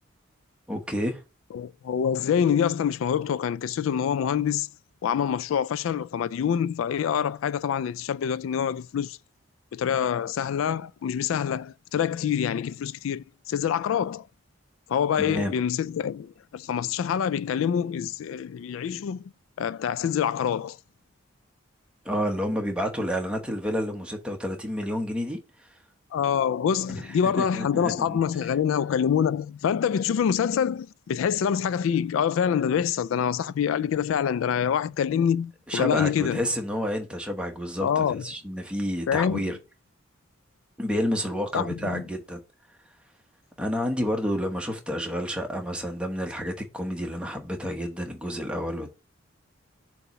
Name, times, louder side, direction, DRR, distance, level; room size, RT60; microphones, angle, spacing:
voice 1, 0.7-1.2 15.2-15.5 22.0-25.4 26.9-28.5 35.7-39.6 40.8-42.4 43.6-49.0, equal, 5° right, 1.0 m, -30 dB
voice 2, 1.5-4.7 5.0-9.2 9.7-14.3 14.9-19.2 19.6-20.8 26.1-36.4 37.8-38.2 39.1-39.4 41.5-42.0, left 8 dB, 80° left, 0.3 m, -26 dB
6.8 x 3.0 x 5.6 m
head